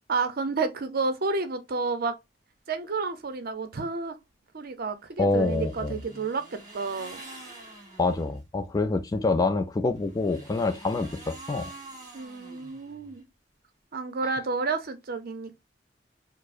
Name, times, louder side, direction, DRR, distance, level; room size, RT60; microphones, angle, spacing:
voice 1, 0.1-2.2 2.7-4.2 4.5-7.2 12.1-13.2 13.9-15.7, right 4 dB, 55° right, 0.6 m, -30 dB
voice 2, 5.2-6.0 8.0-11.7, left 3 dB, 20° left, 0.3 m, -26 dB
sound 1, 5.3-8.4 9.9-13.2, right 2 dB, 20° right, 1.3 m, -46 dB
4.5 x 2.0 x 2.4 m
head